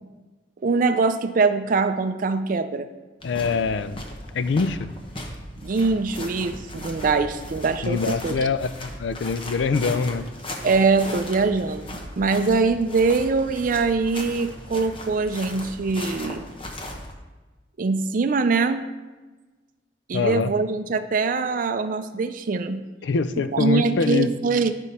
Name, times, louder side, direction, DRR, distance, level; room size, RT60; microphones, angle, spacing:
voice 1, 0.6-2.9 5.6-8.4 10.6-16.5 17.8-18.9 20.1-22.9 23.5-24.7, right 4 dB, 50° right, 8 dB, 0.4 m, -23 dB
voice 2, 3.2-4.0 4.3-4.9 7.8-10.3 20.1-20.5 23.0-24.3, left 5 dB, 75° left, 13 dB, 0.4 m, -24 dB
sound 1, 3.2-17.1, left 1 dB, 30° left, 1.0 m, -37 dB
11.0 x 5.3 x 4.2 m, 1.2 s
head